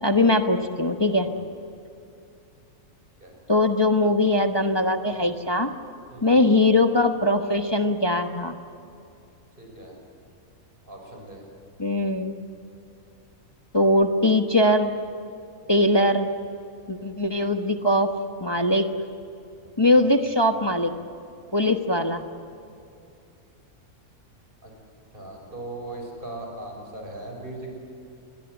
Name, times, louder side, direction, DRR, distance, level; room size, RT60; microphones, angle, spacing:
voice 1, 0.0-1.3 3.5-5.7 6.2-8.6 11.8-12.4 13.7-14.9 15.7-16.3 16.9-18.1 18.4-18.9 19.8-20.9 21.5-22.2, left 1 dB, 20° left, 5 dB, 1.0 m, -21 dB
voice 2, 6.1-6.4 9.6-9.9 10.9-11.4 19.8-20.0 24.6-24.7 25.1-27.7, right 2 dB, 40° right, 1 dB, 6.4 m, -39 dB
27.5 x 22.5 x 8.1 m, 2.6 s
omnidirectional pair, 1.5 m